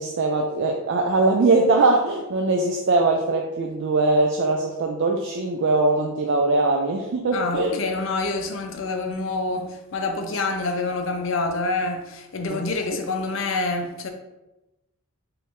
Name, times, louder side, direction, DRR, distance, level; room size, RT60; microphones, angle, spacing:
voice 1, 0.0-7.8 12.5-12.6, right 3 dB, 60° right, 0.4 m, -21 dB
voice 2, 7.3-14.1, left 3 dB, 65° left, 0.5 m, -27 dB
4.4 x 2.6 x 3.6 m
head